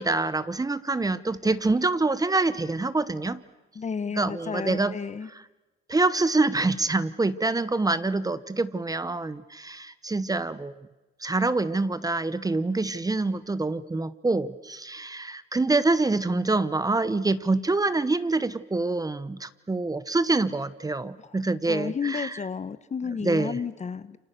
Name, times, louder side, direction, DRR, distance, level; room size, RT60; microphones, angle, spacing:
voice 1, 0.0-3.4 4.2-5.0 5.9-10.7 11.2-22.4 23.2-23.6, right 3 dB, 20° right, 15 dB, 1.0 m, -26 dB
voice 2, 3.7-5.3 21.7-24.2, left 6 dB, 35° left, 15 dB, 1.0 m, -32 dB
29.0 x 26.5 x 6.7 m, 1.1 s
cardioid pair, 90°, 20 cm